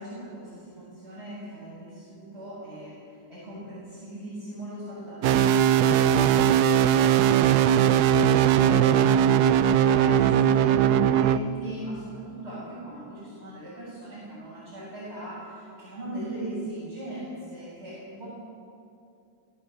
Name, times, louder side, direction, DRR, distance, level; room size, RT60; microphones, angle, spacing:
voice 1, 0.0-18.3, right 1 dB, 30° right, -10 dB, 7.5 m, -38 dB
sound 1, 5.2-11.4, right 9 dB, 70° right, 0.9 m, -20 dB
19.5 x 16.5 x 8.1 m, 2.6 s
omnidirectional pair, 2.3 m